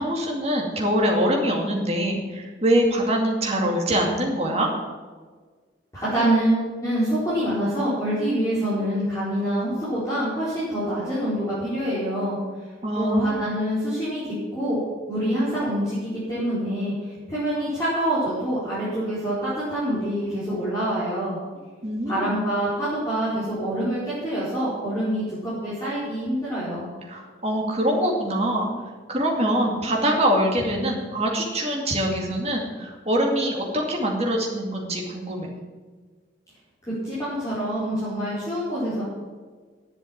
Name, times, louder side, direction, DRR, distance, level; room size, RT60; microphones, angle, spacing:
voice 1, 0.0-4.7 12.8-13.6 21.8-22.4 27.1-28.7 29.1-35.5, equal, 30° right, 0 dB, 2.4 m, -24 dB
voice 2, 5.9-12.4 12.9-14.8 15.1-21.4 22.0-26.9 36.8-39.0, right 1 dB, 15° left, -11 dB, 4.6 m, -26 dB
11.0 x 8.0 x 8.8 m, 1.5 s
head